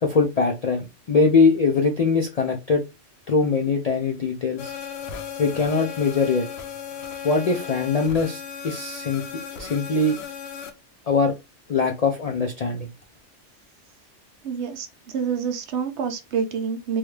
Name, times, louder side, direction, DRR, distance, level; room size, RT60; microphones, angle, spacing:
voice 1, 0.0-2.8 3.3-4.7 5.4-6.5 7.2-9.2 9.6-10.2 11.1-11.3 11.7-12.9, left 4 dB, 60° left, 0.4 m, -22 dB
sound 1, 4.6-10.7, left 7 dB, 80° left, 1.0 m, -36 dB
voice 2, 14.4-17.0, right 6 dB, 70° right, 0.9 m, -27 dB
3.1 x 2.3 x 3.2 m
omnidirectional pair, 1.3 m